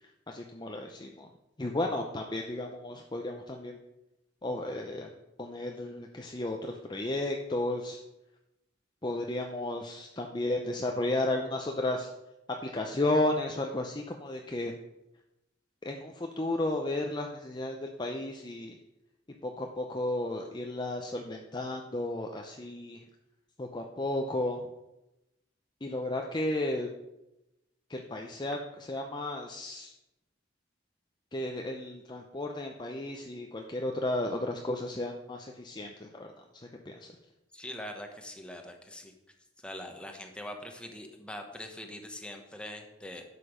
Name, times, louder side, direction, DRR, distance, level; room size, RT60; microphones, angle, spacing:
voice 1, 0.3-1.3 1.6-3.8 4.4-5.1 5.4-8.0 9.0-12.1 12.6-14.7 15.8-18.8 19.4-23.0 23.6-24.7 25.8-26.9 27.9-28.6 28.9-29.9 31.3-36.3 36.5-37.1, left 1 dB, 25° left, 2 dB, 0.6 m, -33 dB
voice 2, 37.5-39.1 39.6-43.2, left 1 dB, 5° left, 3 dB, 1.2 m, -43 dB
11.5 x 6.7 x 5.1 m, 0.93 s
head